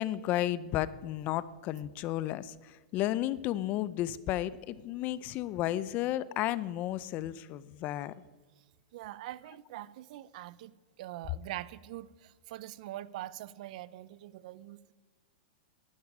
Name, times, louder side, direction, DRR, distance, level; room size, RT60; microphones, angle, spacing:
voice 1, 0.0-8.1, left 14 dB, 35° left, 17 dB, 0.6 m, -33 dB
voice 2, 8.9-14.8, right 15 dB, 60° right, 19 dB, 0.6 m, -43 dB
12.0 x 11.0 x 9.7 m, 1.3 s
supercardioid pair, 145°, 5 cm